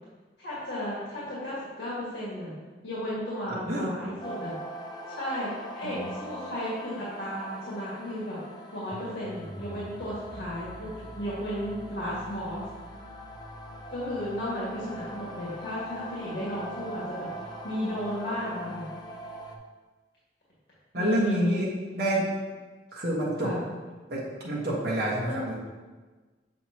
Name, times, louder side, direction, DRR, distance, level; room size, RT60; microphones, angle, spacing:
voice 1, 0.4-2.5 2.8-4.5 5.1-8.4 8.7-12.6 13.9-17.3 17.6-18.9 20.9-21.6 23.4-23.6 25.2-25.5, equal, 65° left, -9 dB, 2.0 m, -34 dB
sound 1, 4.2-19.6, right 1 dB, 25° left, 0.5 m, -42 dB
voice 2, 5.8-6.1 20.9-22.2 22.9-23.5 24.1-25.5, equal, 60° right, -6 dB, 1.4 m, -28 dB
7.4 x 5.2 x 2.9 m, 1.3 s
head